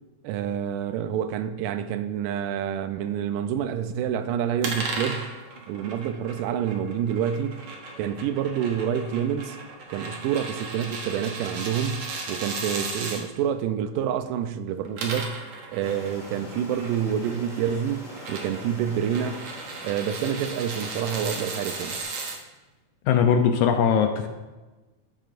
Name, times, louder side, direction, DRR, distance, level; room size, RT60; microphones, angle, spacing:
voice 1, 0.2-5.3 5.7-7.6 8.0-9.6 9.9-15.4 15.7-19.5 19.8-22.0, right 8 dB, 85° right, 2.2 m, -28 dB
sound 1, 4.6-13.2 14.7-22.4, right 3 dB, 65° right, 1.3 m, -36 dB
sound 2, 15.8-22.0, left 1 dB, 35° left, 1.0 m, -44 dB
voice 2, 23.1-24.3, left 7 dB, 80° left, 1.8 m, -20 dB
14.5 x 7.5 x 2.5 m
omnidirectional pair, 3.8 m